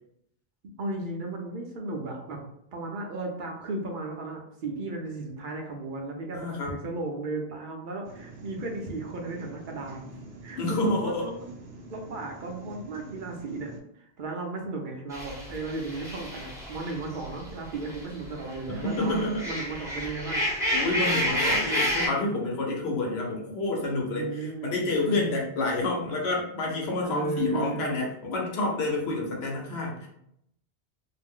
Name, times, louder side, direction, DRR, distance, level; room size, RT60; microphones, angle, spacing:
voice 1, 0.8-2.4 2.7-10.1 10.4-11.5 11.9-13.7 14.0-20.5 24.1-24.7 25.1-25.2 27.0-28.0, right 2 dB, 60° right, 1 dB, 0.6 m, -35 dB
voice 2, 6.3-6.7 10.6-11.3 18.7-19.5 20.7-30.1, left 2 dB, 85° left, -1 dB, 1.0 m, -29 dB
sound 1, 8.0-13.8, right 2 dB, 85° right, 0.9 m, -46 dB
sound 2, 15.1-18.0 18.4-22.1, equal, 5° right, 0.6 m, -29 dB
2.5 x 2.1 x 3.5 m, 0.76 s
omnidirectional pair, 1.0 m